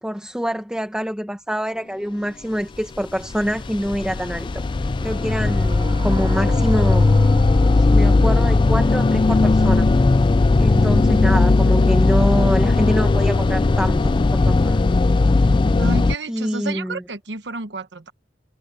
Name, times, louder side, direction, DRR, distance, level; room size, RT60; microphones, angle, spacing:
voice 1, 0.0-4.6 5.0-7.1 7.7-9.9 10.6-14.8 16.3-17.0, equal, 5° right, 1.5 m, -25 dB
sound 1, 3.0-16.1, left 3 dB, 25° left, 0.3 m, -17 dB
sound 2, 4.2-9.3, right 3 dB, 25° right, 2.3 m, -41 dB
sound 3, 4.4-14.9, left 1 dB, 85° left, 2.1 m, -46 dB
voice 2, 15.8-18.1, right 3 dB, 70° right, 1.1 m, -31 dB
head